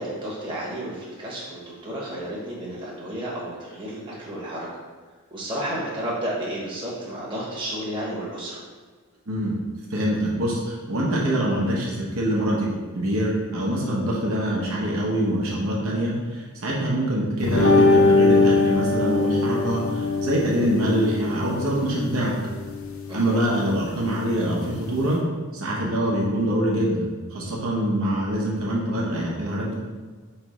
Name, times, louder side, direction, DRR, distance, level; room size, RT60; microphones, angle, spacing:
voice 1, 0.0-4.7 5.3-8.6 23.1-23.3, right 1 dB, 20° right, -7 dB, 1.0 m, -32 dB
voice 2, 9.9-12.7 12.9-22.4 23.1-25.2 25.5-29.8, right 1 dB, 75° right, -4 dB, 0.9 m, -24 dB
sound 1, 17.4-25.1, left 3 dB, 60° left, 0.5 m, -22 dB
3.2 x 3.1 x 4.7 m, 1.4 s
head